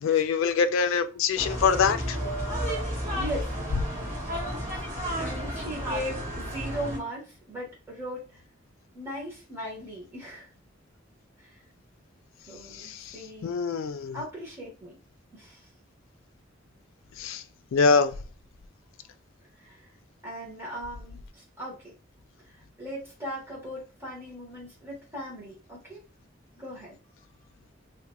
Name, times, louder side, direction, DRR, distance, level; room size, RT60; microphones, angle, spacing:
voice 1, 0.0-2.2 12.8-13.1 13.4-14.2 17.2-17.4 17.7-18.1, left 5 dB, 90° left, 0.3 m, -24 dB
sound 1, 1.4-7.0, equal, 40° right, 1.3 m, -32 dB
voice 2, 3.1-3.5 4.7-4.8 5.1-8.4 8.9-10.5 11.4-11.6 12.5-13.6 14.1-15.0 15.3-15.7 19.6-19.9 20.2-21.9 22.5-26.0 26.6-27.0, equal, 10° right, 1.3 m, -38 dB
3.2 x 2.9 x 2.3 m
head